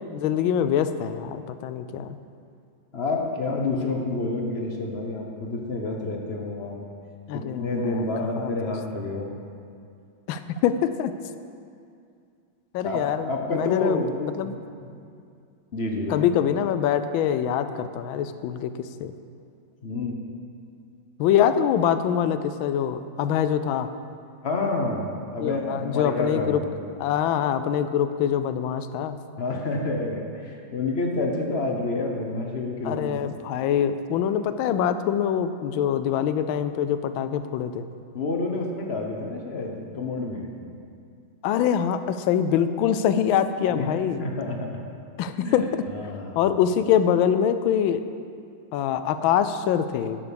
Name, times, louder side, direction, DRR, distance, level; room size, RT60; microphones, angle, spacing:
voice 1, 0.0-2.2 7.3-8.7 10.3-11.1 12.7-14.6 16.1-19.1 21.2-23.9 25.4-26.6 27.0-29.2 32.8-37.9 41.4-44.3 45.2-45.8 46.4-48.0 48.7-50.2, left 9 dB, 85° left, 11 dB, 1.3 m, -24 dB
voice 2, 2.9-6.8 7.3-9.3 12.8-13.0 13.3-14.1 14.4-14.5 14.8-14.9 15.7-16.3 19.8-20.1 24.4-26.6 29.4-33.1 38.1-40.5 43.7-44.8 45.4-45.5 45.9-46.4, left 3 dB, 45° left, 1 dB, 0.9 m, -28 dB
11.0 x 5.9 x 6.9 m, 2.4 s
omnidirectional pair, 2.1 m